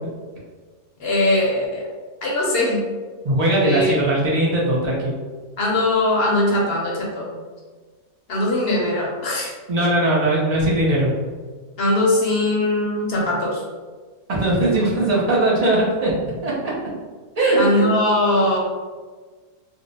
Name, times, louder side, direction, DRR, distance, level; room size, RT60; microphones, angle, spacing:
voice 1, 1.0-1.8 2.2-2.8 3.6-4.0 5.6-7.4 8.3-9.5 11.8-13.6 17.6-18.6, left 1 dB, 55° left, -3 dB, 0.7 m, -20 dB
voice 2, 3.2-5.1 9.7-11.1 14.3-16.1 16.4-16.5 17.4-17.8, right 1 dB, 50° right, -6 dB, 0.4 m, -19 dB
2.7 x 2.0 x 3.9 m, 1.4 s
omnidirectional pair, 1.6 m